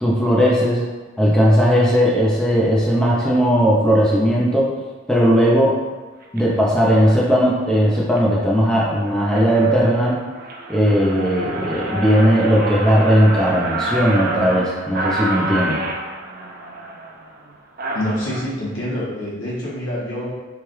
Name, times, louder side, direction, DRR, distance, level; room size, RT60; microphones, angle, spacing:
voice 1, 0.0-0.8 1.2-4.7 5.1-5.8 6.3-10.2 10.7-15.8, equal, 5° left, -6 dB, 0.6 m, -17 dB
sound 1, 6.2-6.4 7.0-7.3 7.8-8.2 8.7-8.8 9.0-18.4, right 2 dB, 45° right, 0.4 m, -28 dB
voice 2, 17.9-20.3, equal, 75° left, -7 dB, 1.2 m, -26 dB
4.7 x 2.4 x 3.1 m, 1.3 s
head